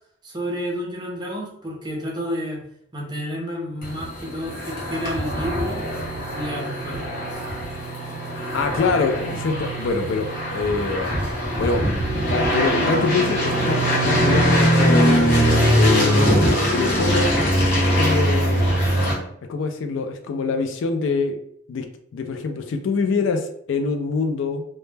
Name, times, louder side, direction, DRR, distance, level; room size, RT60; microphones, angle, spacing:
voice 1, 0.2-2.6 2.9-5.9 6.3-7.1, equal, 20° right, -2 dB, 0.5 m, -30 dB
sound 1, 3.8-19.1, equal, 45° left, 0.9 m, -21 dB
voice 2, 8.5-15.0 15.8-17.4 17.8-18.7 19.5-21.4 21.7-21.9 22.1-24.6, left 4 dB, 75° left, 6 dB, 0.3 m, -25 dB
2.1 x 2.1 x 3.1 m, 0.69 s
head